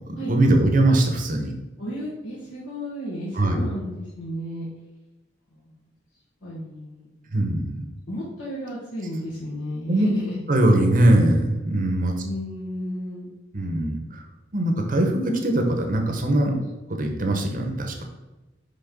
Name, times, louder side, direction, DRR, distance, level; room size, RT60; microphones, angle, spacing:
voice 1, 0.1-1.5 3.4-3.6 7.3-7.8 9.9-10.1 10.5-12.1 13.5-14.2 14.5-16.6 17.0-18.0, right 1 dB, 45° right, 3 dB, 1.0 m, -21 dB
voice 2, 1.8-4.6 5.5-5.7 6.4-7.1 8.1-10.4 12.2-13.3, equal, 75° left, -8 dB, 1.5 m, -33 dB
6.0 x 3.7 x 5.3 m, 1.1 s
head